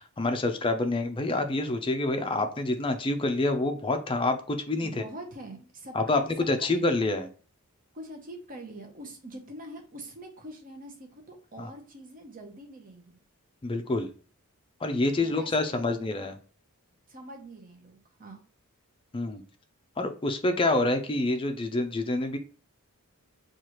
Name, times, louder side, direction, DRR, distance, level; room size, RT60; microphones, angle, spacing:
voice 1, 0.0-5.0 5.9-7.3 11.6-11.7 13.6-14.1 14.8-16.4 19.1-19.4 20.0-22.4, left 2 dB, 25° left, 6 dB, 0.4 m, -27 dB
voice 2, 4.8-6.8 7.9-13.2 15.2-16.1 17.1-18.4, right 1 dB, 40° right, 3 dB, 0.8 m, -44 dB
4.6 x 2.4 x 2.9 m, 0.39 s
head